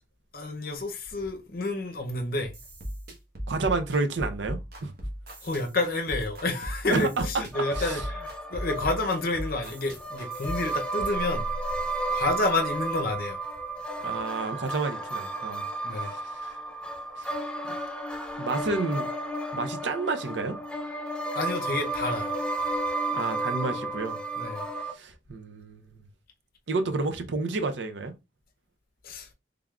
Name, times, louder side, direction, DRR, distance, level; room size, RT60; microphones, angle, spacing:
voice 1, 0.3-2.5 5.4-11.5 12.1-13.4 15.8-16.1 21.3-22.4 24.4-24.7 29.0-29.3, left 2 dB, 55° left, 0.6 m, -29 dB
sound 1, 2.4-11.0, equal, 60° right, 1.1 m, -38 dB
voice 2, 3.5-4.9 6.9-7.3 7.7-8.0 14.0-15.6 16.0-16.5 17.2-17.4 18.4-19.1 19.5-20.6 23.1-24.2 24.9-26.0 26.7-28.1, right 3 dB, 85° right, 0.6 m, -30 dB
sound 2, 7.5-24.9, right 2 dB, 5° left, 0.4 m, -33 dB
3.5 x 3.4 x 2.3 m
head